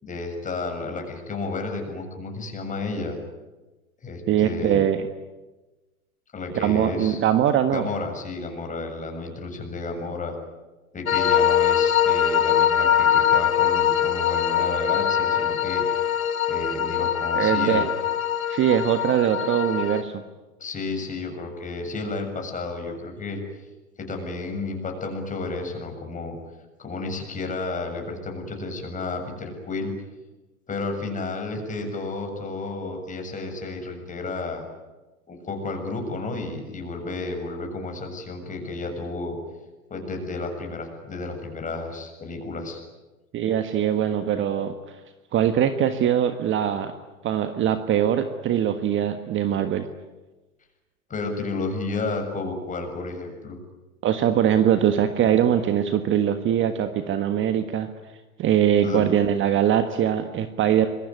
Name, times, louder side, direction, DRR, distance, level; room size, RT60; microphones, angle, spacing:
voice 1, 0.0-3.2 4.0-4.8 6.3-7.2 7.7-10.3 10.9-16.1 16.5-17.9 20.6-23.4 24.0-26.4 26.8-29.9 30.7-34.6 35.3-39.4 39.9-42.8 51.1-53.6 58.8-59.0, left 3 dB, 20° left, 4 dB, 7.2 m, -32 dB
voice 2, 4.3-5.0 6.5-7.9 17.3-17.9 18.5-20.1 43.3-45.0 45.3-46.9 47.2-49.9 54.0-57.9 58.4-60.9, right 10 dB, 30° right, 9 dB, 1.6 m, -22 dB
sound 1, 11.1-20.0, left 9 dB, 75° left, 2.3 m, -22 dB
26.0 x 22.5 x 9.8 m, 1.1 s
hypercardioid pair, 110°, 42 cm